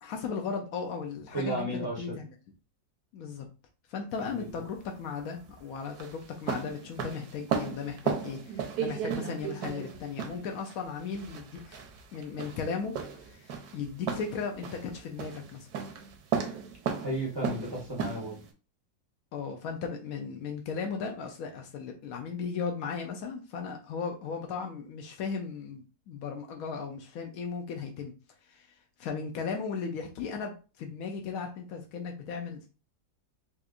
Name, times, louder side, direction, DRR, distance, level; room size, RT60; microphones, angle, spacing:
voice 1, 0.0-1.7 2.0-2.3 3.1-3.5 3.9-11.8 12.1-15.7 19.3-28.1 28.4-32.7, left 5 dB, 85° left, 3 dB, 0.7 m, -36 dB
voice 2, 1.3-2.2 4.3-4.6 17.0-18.3, right 1 dB, 30° right, -5 dB, 0.4 m, -34 dB
sound 1, 4.1-18.5, right 7 dB, 65° right, 1.0 m, -36 dB
4.3 x 2.4 x 2.4 m, 0.34 s
omnidirectional pair, 2.1 m